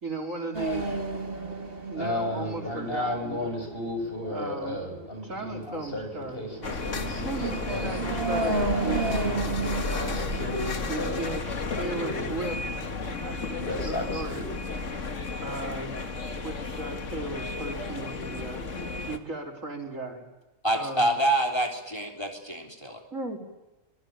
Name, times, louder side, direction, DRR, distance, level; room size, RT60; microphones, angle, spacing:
voice 1, 0.0-1.0 1.8-3.5 4.3-4.8 5.2-6.4 7.2-10.4 10.9-12.6 13.2-14.4 15.4-15.9 16.4-18.6 19.1-20.2 20.7-21.1 23.1-23.4, right 2 dB, 70° right, 3 dB, 4.9 m, -36 dB
sound 1, 0.5-14.0, right 3 dB, 45° right, 2.4 m, -34 dB
voice 2, 1.9-7.9 8.3-9.1 9.9-11.3 11.8-12.3 13.6-14.5, left 1 dB, 45° left, 4 dB, 7.4 m, -34 dB
sound 2, 6.6-19.2, left 3 dB, 65° left, 2.2 m, -33 dB
voice 3, 20.6-23.0, right 1 dB, 20° left, 3 dB, 3.5 m, -26 dB
25.5 x 22.5 x 8.9 m, 1.0 s
omnidirectional pair, 1.4 m